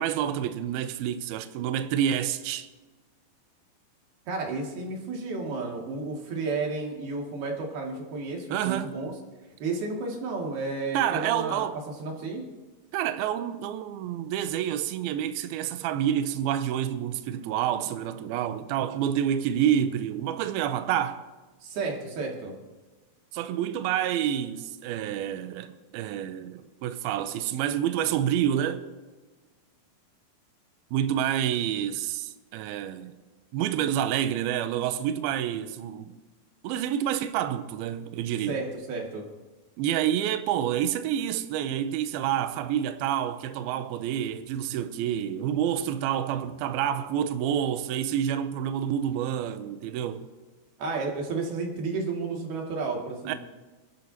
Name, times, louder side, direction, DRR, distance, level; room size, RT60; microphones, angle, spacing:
voice 1, 0.0-2.7 8.5-9.0 10.9-11.8 12.9-21.2 23.3-28.9 30.9-33.2 33.5-36.2 36.6-38.6 39.8-50.3 53.3-53.4, right 10 dB, 85° right, 2.2 m, -28 dB
voice 2, 4.3-9.1 9.6-12.4 21.6-22.5 38.5-39.3 50.8-53.4, right 3 dB, 65° right, 4.0 m, -32 dB
27.5 x 12.5 x 2.8 m
omnidirectional pair, 5.1 m